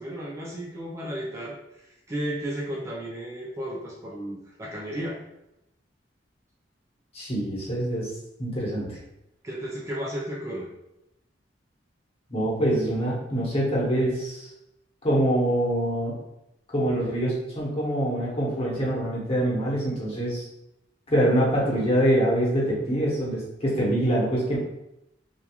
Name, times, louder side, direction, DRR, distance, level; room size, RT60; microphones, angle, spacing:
voice 1, 0.0-5.2 9.4-10.7, right 1 dB, 15° right, -4 dB, 0.3 m, -34 dB
voice 2, 7.1-8.1 8.4-9.0 12.3-14.5 15.0-16.1 16.7-20.5 21.1-24.6, right 1 dB, 35° left, -5 dB, 0.9 m, -25 dB
2.9 x 2.3 x 2.3 m, 0.87 s
head